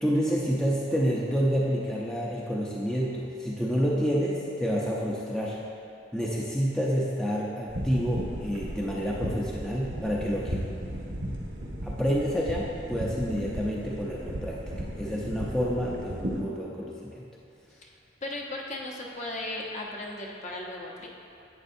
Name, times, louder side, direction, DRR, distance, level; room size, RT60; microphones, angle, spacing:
voice 1, 0.0-5.6 6.1-10.7 11.8-14.6 15.0-17.2, equal, 5° left, -5 dB, 0.6 m, -28 dB
sound 1, 7.7-16.4, equal, 75° right, 1.3 m, -36 dB
voice 2, 18.2-21.1, left 1 dB, 40° left, -1 dB, 0.9 m, -36 dB
11.0 x 8.6 x 2.7 m, 2.6 s
head